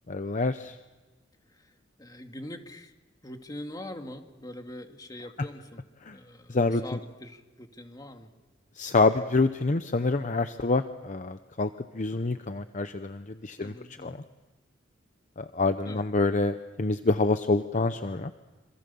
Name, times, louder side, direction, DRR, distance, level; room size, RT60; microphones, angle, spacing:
voice 1, 0.1-0.8 6.0-6.2 6.5-7.0 8.8-11.7 11.9-13.7 14.0-14.2 15.4-18.3, left 3 dB, 40° left, 10 dB, 0.8 m, -27 dB
voice 2, 2.0-2.9 3.2-5.8 6.1-8.3 13.6-14.2 15.8-16.0, left 1 dB, 20° left, 5 dB, 2.2 m, -43 dB
27.5 x 26.5 x 7.0 m, 1.2 s
head